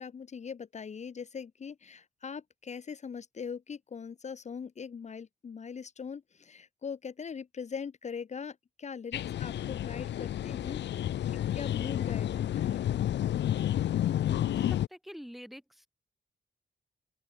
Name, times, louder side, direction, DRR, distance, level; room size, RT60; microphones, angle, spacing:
voice 1, 0.0-10.8 11.1-13.1, left 6 dB, 40° left, 1.4 m, -41 dB
sound 1, 9.1-14.9, left 11 dB, 85° left, 0.6 m, -30 dB
voice 2, 14.2-15.9, equal, ahead, 4.6 m, -47 dB
open air
wide cardioid pair, 160°, 18 cm